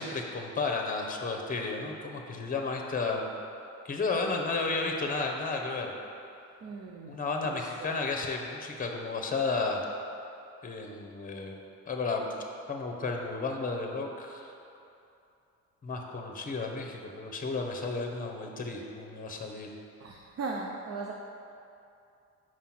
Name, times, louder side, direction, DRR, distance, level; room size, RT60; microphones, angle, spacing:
voice 1, 0.0-3.2 3.8-5.9 7.1-9.8 10.6-11.6 11.9-12.3 12.7-14.5 15.8-19.7, left 3 dB, 30° left, 2 dB, 0.9 m, -33 dB
voice 2, 6.6-7.2 7.4-8.0 20.0-21.1, right 4 dB, 55° right, 0 dB, 0.7 m, -38 dB
5.6 x 4.8 x 6.0 m, 2.7 s
cardioid pair, 90°, 30 cm